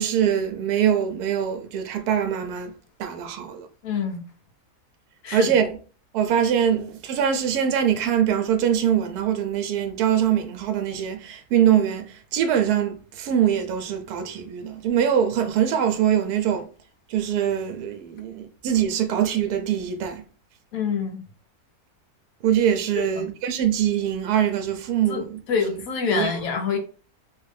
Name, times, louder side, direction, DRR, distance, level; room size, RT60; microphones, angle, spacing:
voice 1, 0.0-2.7 3.0-3.7 5.3-5.8 6.1-16.7 17.1-20.2 22.4-25.8 26.1-26.4, right 9 dB, 80° right, 1.1 m, -23 dB
voice 2, 3.8-4.2 5.2-5.5 20.7-21.2 23.0-23.3 25.1-25.2 25.5-26.8, left 6 dB, 70° left, 1.1 m, -26 dB
3.1 x 2.5 x 3.2 m
omnidirectional pair, 1.6 m